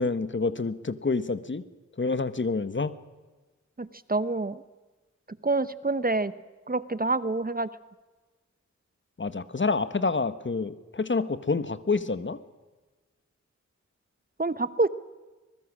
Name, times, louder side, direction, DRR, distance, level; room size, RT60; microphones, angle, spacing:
voice 1, 0.0-1.6 2.0-2.9 9.2-12.4, left 4 dB, 40° left, 14 dB, 1.1 m, -28 dB
voice 2, 3.8-4.6 5.4-6.3 6.7-7.7 14.4-14.9, right 3 dB, 30° right, 15 dB, 0.9 m, -27 dB
23.5 x 21.0 x 6.2 m, 1.2 s
cardioid pair, 55°, 30 cm